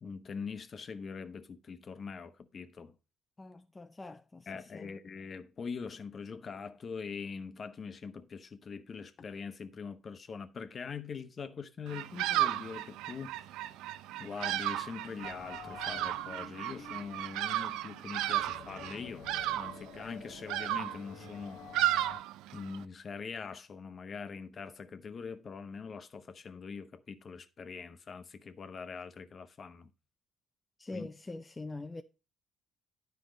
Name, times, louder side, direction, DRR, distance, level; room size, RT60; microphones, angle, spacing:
voice 1, 0.0-2.9 4.5-13.3 14.2-19.3 19.5-21.6 21.9-22.1 22.5-29.9 30.9-31.1, left 5 dB, 45° left, 0.9 m, -43 dB
voice 2, 3.4-4.9 30.8-32.0, left 2 dB, 25° left, 0.5 m, -44 dB
Bird vocalization bird call bird song, 11.9-22.8, right 13 dB, 85° right, 0.4 m, -34 dB
sound 1, 15.2-22.2, left 7 dB, 80° left, 1.1 m, -50 dB
10.0 x 4.6 x 5.1 m
supercardioid pair, 80°, 0 cm